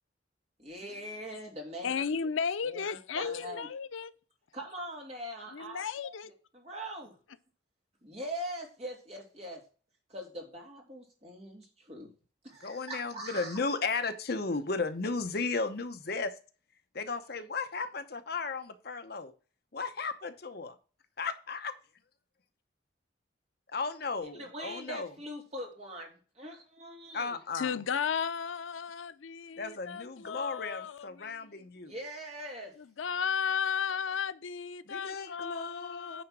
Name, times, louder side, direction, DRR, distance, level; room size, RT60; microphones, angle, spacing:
voice 1, 0.6-2.1 2.6-3.7 4.5-6.1 6.5-7.2 8.0-9.6 10.1-12.1 12.4-13.6 24.3-27.4 31.9-32.8, equal, 35° right, 2.7 m, -42 dB
voice 2, 1.8-4.1 5.5-6.3 27.5-31.4 32.8-36.2, left 7 dB, 90° left, 0.5 m, -34 dB
voice 3, 12.6-16.4 16.9-19.3 19.7-20.8 21.2-21.7 23.7-25.1 27.1-27.8 29.6-31.9 34.9-36.2, left 4 dB, 55° left, 0.8 m, -35 dB
9.3 x 3.9 x 6.1 m
head